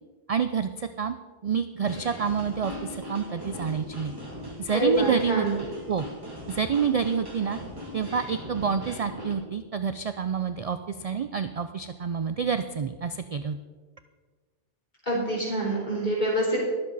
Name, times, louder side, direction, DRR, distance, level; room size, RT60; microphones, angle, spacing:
voice 1, 0.3-1.1 1.4-4.1 4.6-5.5 5.9-6.1 6.5-7.6 7.9-13.6, right 6 dB, 55° right, 10 dB, 0.4 m, -28 dB
sound 1, 1.8-9.3, equal, 20° right, 2.8 m, -40 dB
voice 2, 4.7-5.5 15.1-16.6, right 1 dB, 40° left, -4 dB, 4.1 m, -26 dB
21.5 x 7.7 x 4.0 m, 1.5 s
omnidirectional pair, 1.1 m